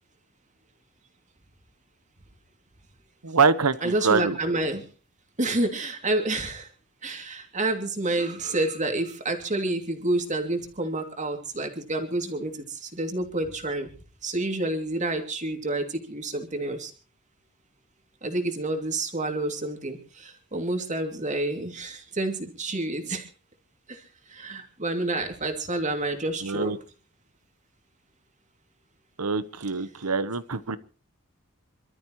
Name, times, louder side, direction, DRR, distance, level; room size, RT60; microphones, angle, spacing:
voice 1, 3.2-4.4 26.4-26.8 29.2-30.8, right 4 dB, 85° right, 15 dB, 1.0 m, -24 dB
voice 2, 3.8-4.9 5.4-6.7 7.0-13.9 14.2-16.9 18.2-23.3 23.9-24.0 24.3-26.8, right 2 dB, 35° right, 4 dB, 2.8 m, -29 dB
27.5 x 13.0 x 3.1 m, 0.36 s
head